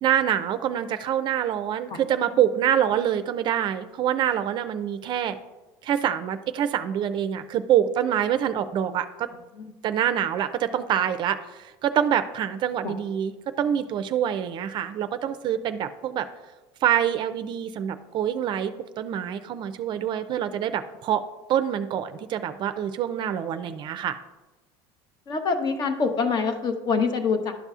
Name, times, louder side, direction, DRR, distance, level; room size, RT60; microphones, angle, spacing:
voice 1, 0.0-5.4 5.8-9.3 9.8-16.3 16.8-21.2 21.5-24.2, right 10 dB, 45° right, 10 dB, 0.4 m, -26 dB
voice 2, 25.3-27.6, left 5 dB, 40° left, 6 dB, 0.9 m, -25 dB
11.0 x 5.4 x 2.4 m, 1.1 s
supercardioid pair, 115°, 11 cm